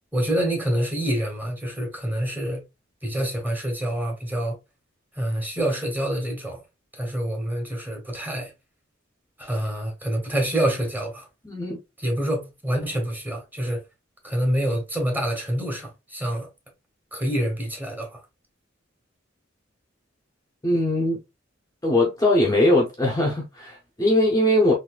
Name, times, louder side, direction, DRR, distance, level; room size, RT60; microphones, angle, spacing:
voice 1, 0.1-2.6 3.0-4.6 5.1-6.6 6.9-8.5 9.4-11.3 12.0-13.8 14.2-16.5 17.1-18.2, right 1 dB, 10° right, 1.1 m, -26 dB
voice 2, 11.4-11.8 20.6-21.2 21.8-24.7, left 1 dB, 15° left, 0.7 m, -21 dB
3.8 x 2.6 x 2.3 m
head